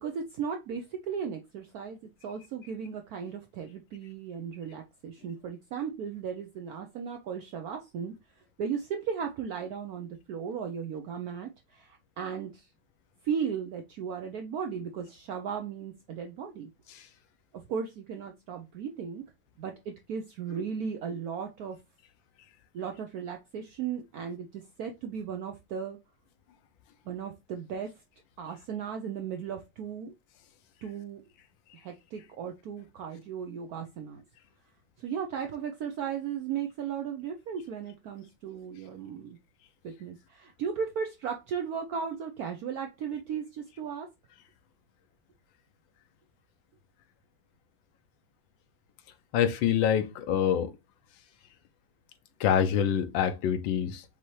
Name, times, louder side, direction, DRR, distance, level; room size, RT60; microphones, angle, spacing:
voice 1, 0.0-8.1 8.6-12.7 13.2-16.7 17.7-19.2 19.6-21.8 22.7-26.0 27.1-27.9 28.4-30.1 30.8-31.2 31.8-34.2 35.0-39.4 39.8-44.1, right 7 dB, 75° right, 0.8 m, -36 dB
voice 2, 49.3-50.7 52.4-54.0, left 9 dB, 80° left, 1.3 m, -26 dB
5.4 x 2.8 x 3.0 m
omnidirectional pair, 2.1 m